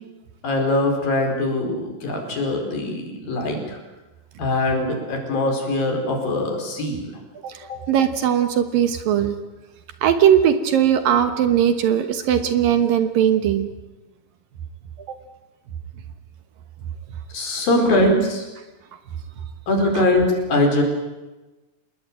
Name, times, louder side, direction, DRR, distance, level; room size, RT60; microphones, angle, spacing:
voice 1, 0.4-3.8 4.4-7.1 7.7-7.8 17.3-18.4 19.7-20.8, left 1 dB, 60° left, 3 dB, 6.5 m, -22 dB
voice 2, 7.9-9.4 10.0-13.7 19.9-20.0, right 9 dB, 65° right, 9 dB, 2.8 m, -19 dB
27.0 x 21.0 x 9.1 m, 1.1 s
omnidirectional pair, 4.6 m